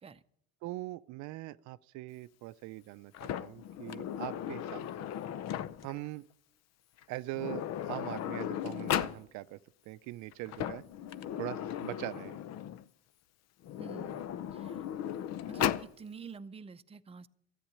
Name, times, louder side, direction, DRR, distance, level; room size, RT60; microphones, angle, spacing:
voice 1, 0.6-5.1 5.8-6.3 7.1-9.6 9.9-10.8 11.4-12.4, right 17 dB, 65° right, 0.6 m, -42 dB
Sliding door, 3.1-6.0 7.0-7.1 7.3-9.2 10.3-12.8 13.6-15.9, left 10 dB, 55° left, 0.7 m, -36 dB
voice 2, 13.8-14.2 14.5-14.8 15.5-17.3, right 5 dB, 20° right, 0.7 m, -47 dB
13.5 x 9.3 x 8.6 m
supercardioid pair, 90°, 31 cm